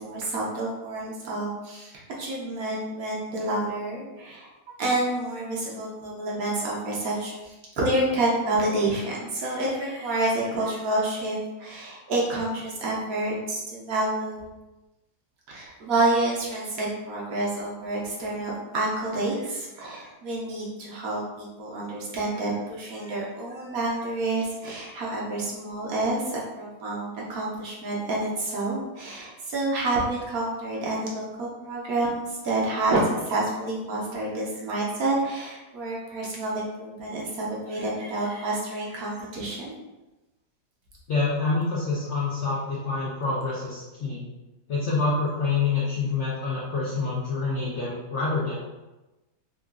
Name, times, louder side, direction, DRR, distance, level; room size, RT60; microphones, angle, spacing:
voice 1, 0.0-4.5 4.8-14.5 15.5-39.7, right 2 dB, 65° right, -4 dB, 1.1 m, -28 dB
voice 2, 41.1-44.2 44.7-48.5, left 4 dB, 70° left, -7 dB, 0.6 m, -27 dB
3.7 x 2.4 x 2.3 m, 1.1 s
omnidirectional pair, 1.8 m